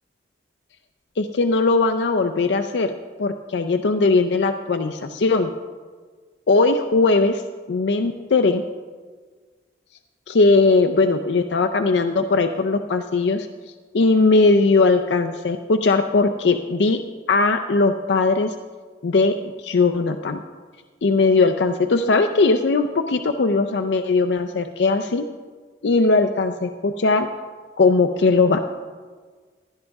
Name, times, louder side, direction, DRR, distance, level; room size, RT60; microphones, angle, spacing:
voice 1, 1.2-2.9 3.2-5.5 6.5-7.4 7.7-8.6 10.3-13.5 13.9-17.0 17.3-18.5 19.0-20.4 21.0-25.2 25.8-27.3 27.8-28.6, left 3 dB, 70° left, 8 dB, 0.5 m, -19 dB
16.0 x 10.5 x 3.5 m, 1.5 s
head